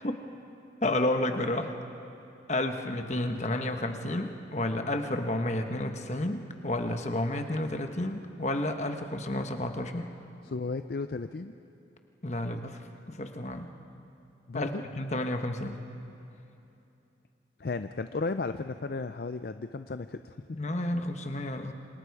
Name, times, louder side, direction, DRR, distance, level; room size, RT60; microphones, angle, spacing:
voice 1, 0.8-1.7 2.5-10.1 12.2-12.8 13.1-13.7 14.5-15.8 20.5-21.7, left 1 dB, 35° left, 6 dB, 1.2 m, -31 dB
voice 2, 10.4-11.5 14.5-14.8 17.6-20.4, left 3 dB, 55° left, 10 dB, 0.5 m, -34 dB
28.0 x 26.5 x 4.8 m, 2.9 s
head